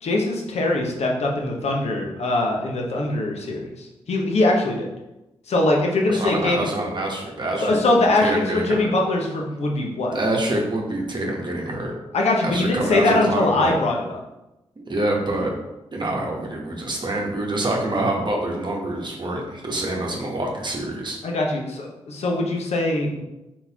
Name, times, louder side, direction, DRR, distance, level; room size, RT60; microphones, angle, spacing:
voice 1, 0.0-4.9 5.5-6.6 7.6-10.1 12.1-14.2 21.2-23.2, left 2 dB, 65° left, 0 dB, 0.9 m, -22 dB
voice 2, 6.1-8.9 10.1-11.9 12.4-13.8 14.8-15.5 15.9-21.2, right 1 dB, 40° right, -1 dB, 1.0 m, -26 dB
4.3 x 3.9 x 2.9 m, 0.96 s
supercardioid pair, 40°, 12 cm